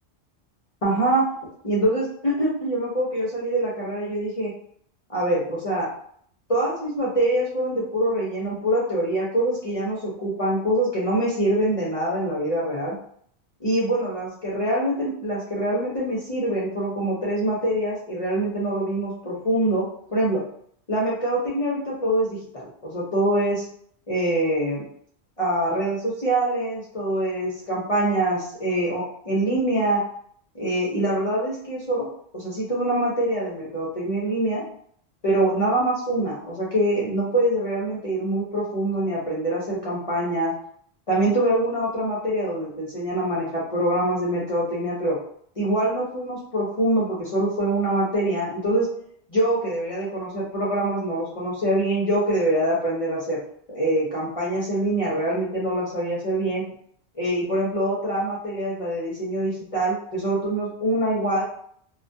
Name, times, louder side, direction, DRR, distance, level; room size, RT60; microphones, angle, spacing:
voice 1, 0.8-1.3 1.6-4.5 5.1-5.9 6.5-13.0 13.6-20.4 20.9-23.6 24.1-24.9 25.4-30.0 30.5-32.1 32.3-34.6 35.2-40.5 41.1-45.2 45.6-48.9 49.3-53.4 53.7-56.6 57.2-61.4, right 1 dB, 40° left, -6 dB, 0.6 m, -24 dB
2.2 x 2.2 x 2.5 m, 0.63 s
omnidirectional pair, 1.1 m